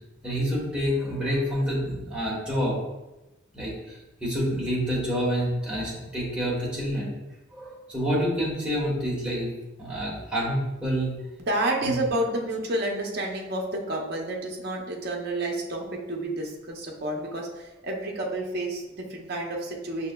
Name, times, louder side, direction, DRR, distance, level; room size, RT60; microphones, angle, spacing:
voice 1, 0.2-2.8 3.5-3.7 4.2-7.1 7.5-9.5 9.8-11.1 11.8-11.9, equal, 5° right, -6 dB, 1.1 m, -27 dB
voice 2, 11.4-20.1, right 1 dB, 50° right, -1 dB, 0.6 m, -30 dB
5.8 x 2.8 x 2.2 m, 1.0 s
head